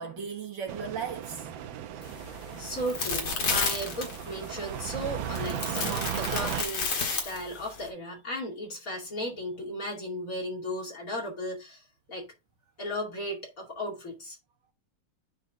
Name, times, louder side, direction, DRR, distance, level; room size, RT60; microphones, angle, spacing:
voice 1, 0.0-2.0 7.0-7.1, right 6 dB, 60° right, 2.0 m, -37 dB
sound 1, 0.7-6.6, right 9 dB, 75° right, 1.5 m, -36 dB
sound 2, 2.0-7.9, left 4 dB, 60° left, 2.2 m, -33 dB
voice 2, 2.6-12.3 12.8-14.4, equal, 40° left, 2.8 m, -35 dB
9.6 x 4.0 x 3.5 m
omnidirectional pair, 2.2 m